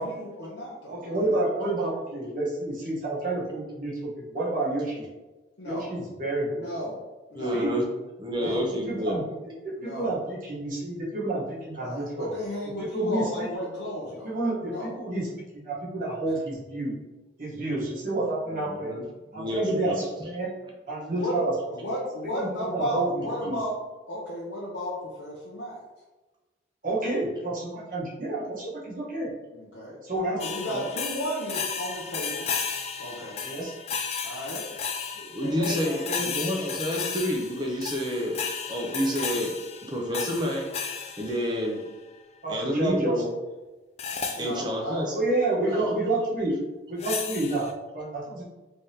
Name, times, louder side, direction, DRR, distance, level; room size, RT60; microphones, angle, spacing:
voice 1, 0.0-1.2 5.6-5.9 6.5-7.0 7.3-7.6 8.3-8.6 9.8-10.1 11.8-14.3 14.6-14.9 21.2-21.4 21.7-23.7 24.1-25.8 29.5-29.9 30.4-32.5 33.0-33.4 34.2-34.7 35.4-36.2 44.3-45.1 45.6-45.9, equal, 80° left, -6 dB, 0.8 m, -34 dB
voice 2, 0.9-5.0 5.6-6.6 7.5-7.7 8.4-8.5 8.9-12.3 12.8-13.2 13.6-13.7 14.1-15.3 15.5-17.0 17.4-18.9 19.3-20.5 20.9-21.5 22.4-23.6 26.8-29.3 30.0-30.9 33.4-33.7 36.1-36.3 42.4-43.2 45.1-46.6 46.9-48.4, right 2 dB, 45° right, -6 dB, 1.1 m, -29 dB
voice 3, 7.3-7.9 8.2-9.2 18.5-19.1 19.3-20.0 35.2-41.8 42.5-43.3 44.4-45.3, equal, 25° right, 0 dB, 0.6 m, -29 dB
sound 1, 30.4-41.9 44.0-44.5 47.0-47.7, left 6 dB, 35° left, 0.3 m, -34 dB
3.4 x 3.4 x 2.8 m, 1.1 s
head